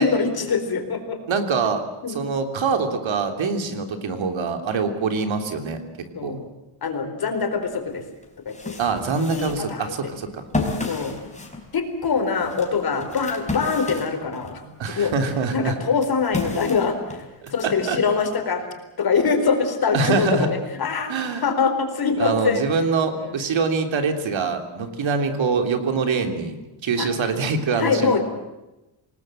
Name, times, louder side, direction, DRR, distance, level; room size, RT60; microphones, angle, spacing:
voice 1, 0.0-1.2 2.0-2.2 3.7-3.8 6.1-6.5 6.8-8.0 8.4-8.7 9.3-9.9 10.9-11.1 11.7-14.6 15.0-15.1 15.5-17.2 17.5-18.7 19.0-22.6 23.1-23.4 25.0-25.1 27.0-27.1 27.8-28.2, left 5 dB, 45° left, 6 dB, 4.4 m, -24 dB
voice 2, 1.3-1.8 2.1-5.8 6.2-6.4 8.8-10.4 14.8-15.8 17.4-18.0 19.9-20.5 21.1-21.5 22.2-28.2, right 4 dB, 65° right, 6 dB, 3.4 m, -24 dB
sound 1, 7.7-7.8 8.2-14.6 15.0-17.6, left 3 dB, 15° left, 4.7 m, -32 dB
27.5 x 19.5 x 7.7 m, 0.99 s
wide cardioid pair, 155°, 50 cm